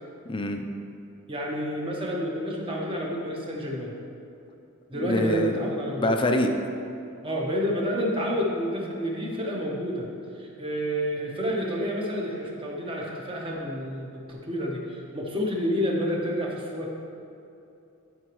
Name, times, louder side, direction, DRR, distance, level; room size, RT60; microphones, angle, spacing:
voice 1, 0.3-0.6 4.9-5.6 5.9-6.5, left 1 dB, 25° left, 5 dB, 0.5 m, -25 dB
voice 2, 1.3-3.9 4.9-6.1 7.2-10.1 10.3-16.9, equal, 25° right, -2 dB, 1.1 m, -29 dB
11.0 x 5.0 x 3.1 m, 2.7 s
head